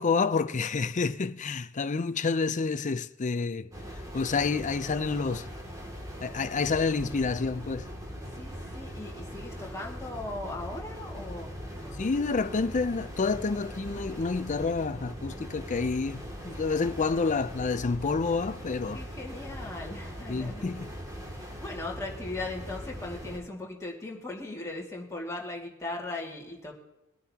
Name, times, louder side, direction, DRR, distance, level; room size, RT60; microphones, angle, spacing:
voice 1, 0.0-3.7 4.1-5.5 6.2-7.9 12.0-19.0 20.3-20.9, left 4 dB, 35° left, 0.5 m, -29 dB
sound 1, 3.7-23.4, equal, 15° right, 2.4 m, -41 dB
voice 2, 8.3-12.0 18.9-20.7 21.3-26.7, left 2 dB, 15° left, 2.2 m, -39 dB
22.0 x 9.5 x 2.9 m
head